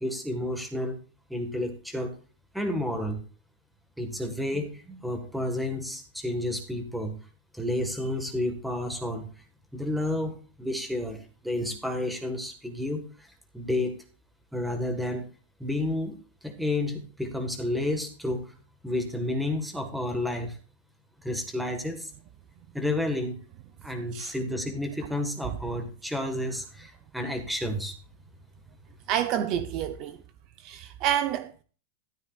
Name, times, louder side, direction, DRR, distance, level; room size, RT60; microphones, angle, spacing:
voice 1, 0.0-1.0 1.3-2.1 2.5-3.2 4.0-7.2 7.5-9.3 9.7-13.0 13.5-14.0 14.5-15.3 15.6-16.2 16.4-18.5 18.8-20.6 21.2-22.1 22.7-23.4 23.8-27.9, left 1 dB, ahead, 1.7 m, -31 dB
voice 2, 29.1-30.2 30.6-31.6, right 10 dB, 35° right, 0.8 m, -28 dB
13.0 x 12.5 x 2.5 m
supercardioid pair, 165°, 0 cm